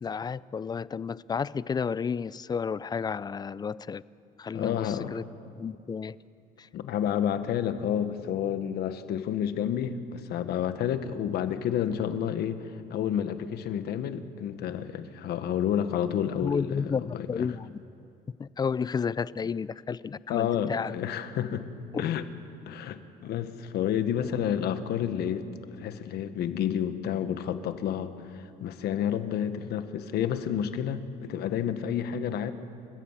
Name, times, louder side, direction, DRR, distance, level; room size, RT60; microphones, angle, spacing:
voice 1, 0.0-4.0 4.4-5.2 5.6-6.2 16.4-17.8 18.4-20.9 21.9-22.1 24.2-24.3, left 6 dB, 25° left, 20 dB, 0.4 m, -32 dB
voice 2, 4.5-5.2 6.7-12.6 12.9-17.5 20.3-21.7 22.0-22.2 22.6-25.5 25.8-32.5, left 9 dB, 70° left, 10 dB, 1.4 m, -30 dB
29.0 x 15.5 x 7.4 m, 2.5 s
cardioid pair, 110°, 17 cm